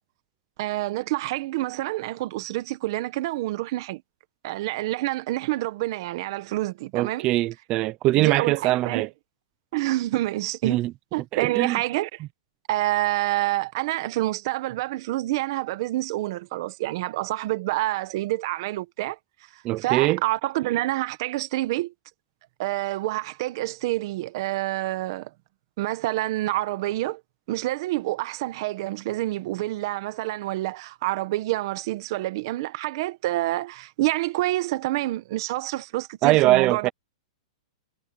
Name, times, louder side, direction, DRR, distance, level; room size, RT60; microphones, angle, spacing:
voice 1, 0.6-4.0 4.4-7.3 8.2-9.1 9.7-10.8 11.1-12.2 12.7-19.2 19.5-21.9 22.6-25.3 25.8-27.2 27.5-36.9, right 17 dB, 40° right, 1.4 m, -27 dB
voice 2, 6.9-9.1 10.6-10.9 11.3-11.8 19.6-20.2 36.2-36.9, right 17 dB, 25° right, 0.5 m, -22 dB
hypercardioid pair, 170°, 3 cm